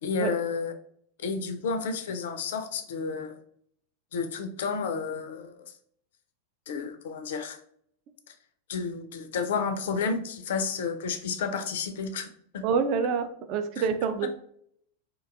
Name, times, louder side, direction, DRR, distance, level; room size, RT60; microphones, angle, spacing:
voice 1, 0.0-0.7 1.2-3.4 4.1-5.7 6.7-7.6 8.7-12.6 14.2-14.3, left 5 dB, 55° left, 7 dB, 0.3 m, -31 dB
voice 2, 12.6-14.3, right 6 dB, 40° right, 8 dB, 0.3 m, -27 dB
2.7 x 2.2 x 2.4 m, 0.66 s
figure-of-eight pair, 90°, 0 cm